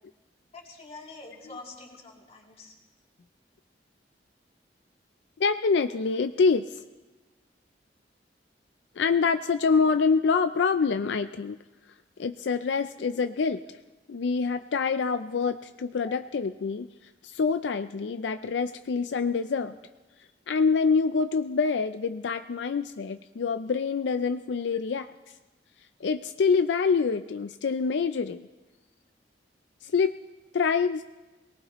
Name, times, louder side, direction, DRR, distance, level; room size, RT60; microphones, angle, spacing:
voice 1, 0.5-2.7 16.0-16.1, left 3 dB, 35° left, -1 dB, 2.6 m, -45 dB
voice 2, 5.4-6.8 9.0-11.6 12.2-13.6 14.1-16.9 17.2-19.7 20.5-25.1 26.0-28.5 29.8-30.1 30.5-31.0, left 5 dB, 80° left, 9 dB, 0.4 m, -26 dB
23.0 x 18.5 x 3.0 m, 1.2 s
head